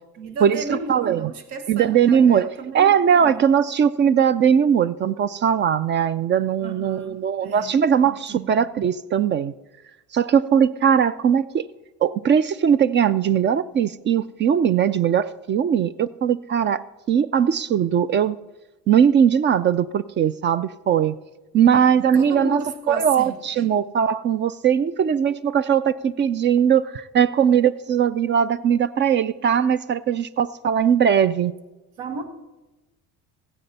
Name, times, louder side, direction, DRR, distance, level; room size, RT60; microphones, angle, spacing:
voice 1, 0.2-3.5 6.6-7.8 8.0-8.7 21.7-23.7 32.0-32.2, right 3 dB, 80° right, 1.6 m, -34 dB
voice 2, 0.9-1.3 1.7-2.5 2.7-9.5 10.1-11.7 12.0-18.4 18.9-21.2 21.5-22.6 22.9-31.5, right 8 dB, 35° right, 0.4 m, -19 dB
15.5 x 9.9 x 4.1 m
cardioid pair, 120°, 34 cm